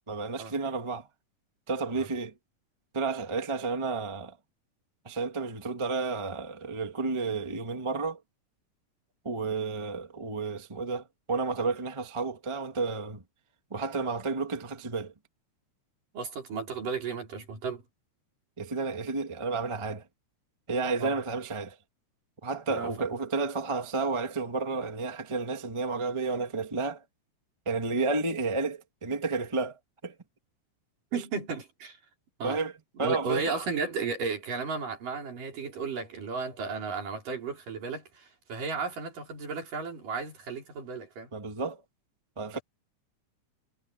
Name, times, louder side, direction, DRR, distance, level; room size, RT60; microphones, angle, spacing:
voice 1, 0.1-1.1 1.7-2.3 2.9-4.4 5.0-8.2 9.2-13.2 13.7-15.1 18.6-20.0 20.7-21.8 22.4-27.0 27.6-30.1 32.4-32.7 33.0-33.6 41.3-41.8 42.4-42.6, right 4 dB, 15° right, 0.9 m, -31 dB
voice 2, 16.1-17.8 21.0-21.1 22.7-22.9 31.1-32.0 32.4-32.6 33.0-41.3, right 4 dB, 80° right, 6.4 m, -34 dB
omnidirectional pair, 3.8 m